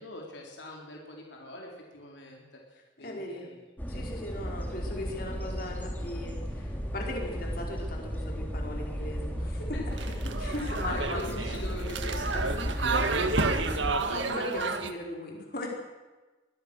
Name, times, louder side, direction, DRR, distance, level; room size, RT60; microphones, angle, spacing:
voice 1, 0.0-3.7 4.4-4.5 9.7-13.6, left 1 dB, 75° left, -1 dB, 4.2 m, -43 dB
voice 2, 3.0-3.5 3.9-9.8 10.2-11.3 13.4-13.7 14.0-15.7, left 1 dB, 50° left, 0 dB, 4.9 m, -38 dB
sound 1, 3.8-14.0, equal, 10° left, 3.2 m, -34 dB
sound 2, 9.9-14.9, right 3 dB, 85° right, 1.8 m, -31 dB
24.5 x 20.0 x 6.5 m, 1.2 s
head